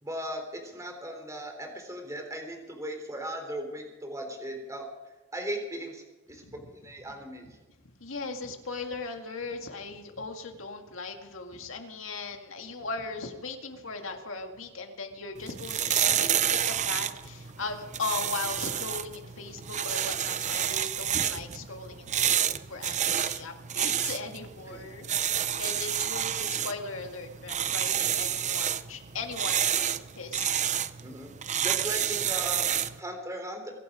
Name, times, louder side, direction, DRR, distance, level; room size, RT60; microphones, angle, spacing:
voice 1, 0.0-4.9 5.3-6.0 6.3-6.6 6.8-7.5 24.7-24.9 31.0-31.3 31.6-33.7, right 1 dB, 15° right, 3 dB, 3.4 m, -37 dB
voice 2, 7.8-22.4 22.7-30.5, left 4 dB, 80° left, 4 dB, 2.1 m, -38 dB
sound 1, 15.4-33.0, right 9 dB, 35° right, 0.6 m, -29 dB
23.5 x 12.0 x 5.0 m, 1.1 s
head